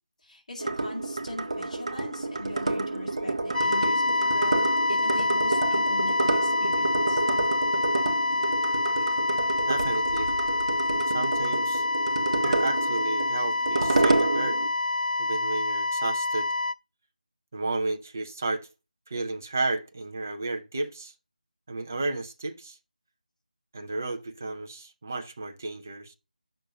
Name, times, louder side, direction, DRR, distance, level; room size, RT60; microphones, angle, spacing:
voice 1, 0.2-7.2, left 1 dB, 45° left, 2.5 m, -41 dB
sound 1, 0.6-14.7, right 2 dB, 40° right, 0.9 m, -29 dB
sound 2, 3.5-16.7, left 2 dB, 75° left, 0.5 m, -26 dB
voice 2, 9.7-10.3 11.0-11.9 12.4-14.6 15.2-16.5 17.5-18.7 19.1-21.1 21.7-22.8 23.7-26.1, right 2 dB, 20° right, 0.5 m, -32 dB
8.9 x 6.3 x 2.7 m
figure-of-eight pair, 175°, 5 cm